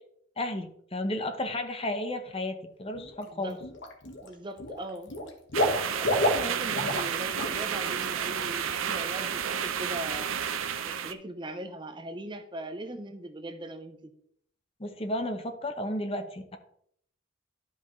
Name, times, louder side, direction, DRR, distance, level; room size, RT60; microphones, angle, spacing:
voice 1, 0.4-3.6 14.8-16.6, left 1 dB, 30° left, 7 dB, 0.8 m, -33 dB
Water / Liquid, 3.0-3.2 3.6-4.3 4.6-7.1 7.4-7.6 8.0-8.1, left 1 dB, 60° left, 1.4 m, -29 dB
voice 2, 4.2-5.1 5.9-10.3 10.9-14.1, right 1 dB, 25° right, 7 dB, 0.6 m, -40 dB
sound 1, 5.5-11.1, right 8 dB, 90° right, 0.6 m, -31 dB
12.0 x 5.4 x 3.1 m, 0.69 s
head